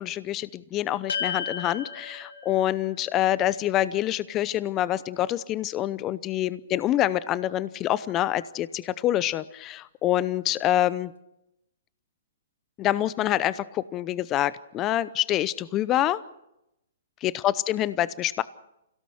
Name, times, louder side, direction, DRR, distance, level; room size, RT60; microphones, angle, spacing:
voice 1, 0.0-11.1 12.8-16.2 17.2-18.4, left 13 dB, 30° left, 17 dB, 0.7 m, -26 dB
sound 1, 1.1-5.6, left 6 dB, 80° left, 2.1 m, -37 dB
28.5 x 17.5 x 6.4 m, 0.86 s
hypercardioid pair, 125°, 0 cm